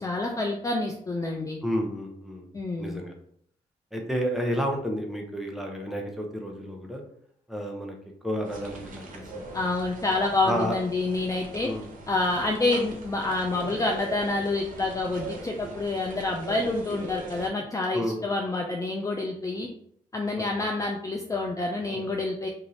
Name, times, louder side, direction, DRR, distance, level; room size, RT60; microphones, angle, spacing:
voice 1, 0.0-1.6 2.5-3.0 9.5-11.7 12.1-19.7 20.1-22.5, left 2 dB, 20° left, 1 dB, 0.4 m, -28 dB
voice 2, 1.6-2.4 2.8-3.1 3.9-7.0 7.5-8.0 8.2-9.4 10.4-10.8 11.6-11.8 17.9-18.2 21.9-22.0, equal, ahead, 1 dB, 0.8 m, -31 dB
sound 1, 8.4-17.5, right 2 dB, 55° right, 0.8 m, -41 dB
2.6 x 2.5 x 3.1 m, 0.67 s
supercardioid pair, 55°, 16 cm